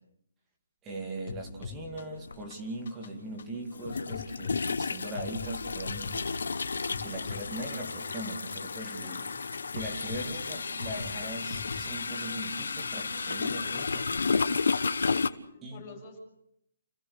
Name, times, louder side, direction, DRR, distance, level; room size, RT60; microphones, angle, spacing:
voice 1, 0.8-6.3 7.0-9.2 9.7-14.1 15.6-15.8, right 1 dB, 10° right, 1 dB, 2.5 m, -40 dB
sound 1, 1.3-12.5, left 5 dB, 45° left, 3.6 m, -44 dB
sound 2, 2.3-2.4 3.8-15.3, left 4 dB, 80° left, 1.2 m, -32 dB
sound 3, 5.4-15.4, left 4 dB, 60° left, 3.9 m, -51 dB
voice 2, 8.8-9.3 10.2-10.3 15.4-16.2, left 4 dB, 15° left, -6 dB, 7.3 m, -48 dB
30.0 x 15.5 x 6.8 m, 0.74 s
hypercardioid pair, 175°, 0 cm